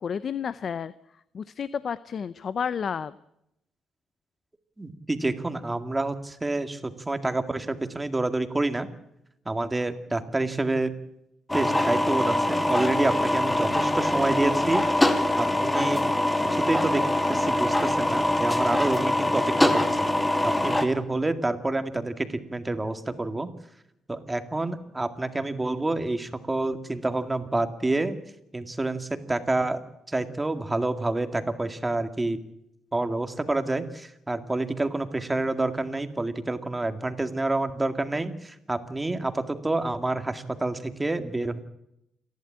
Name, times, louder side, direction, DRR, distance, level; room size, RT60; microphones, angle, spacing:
voice 1, 0.0-0.9 1.3-3.1, left 7 dB, 50° left, 16 dB, 0.7 m, -31 dB
voice 2, 4.8-8.9 9.5-10.9 11.5-16.0 16.5-17.0 17.3-19.8 20.4-23.5 24.1-28.2 28.5-29.8 30.1-32.4 32.9-41.6, right 2 dB, 15° right, 9 dB, 2.1 m, -28 dB
sound 1, 11.5-20.8, left 1 dB, 15° left, 2.5 m, -24 dB
28.5 x 11.5 x 8.9 m, 0.82 s
cardioid pair, 90°, 0 cm